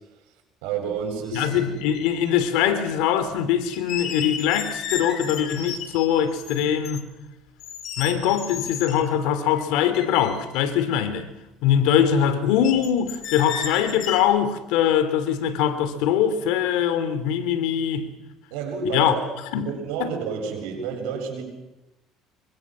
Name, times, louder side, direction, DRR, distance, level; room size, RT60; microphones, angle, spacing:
voice 1, 0.6-1.5 18.5-19.2 19.5-21.4, right 6 dB, 90° right, 7.8 m, -29 dB
sound 1, 1.1-1.2 1.4-2.3 3.7-7.0 7.6-9.0 9.6-9.7 9.9-11.0 12.6-14.2, left 7 dB, 60° left, 4.0 m, -33 dB
voice 2, 1.3-7.1 8.0-11.3 11.6-18.1 18.9-19.2 19.5-19.7 20.0-20.1, left 9 dB, 85° left, 3.1 m, -22 dB
26.5 x 23.5 x 6.3 m
cardioid pair, 110°, 0 cm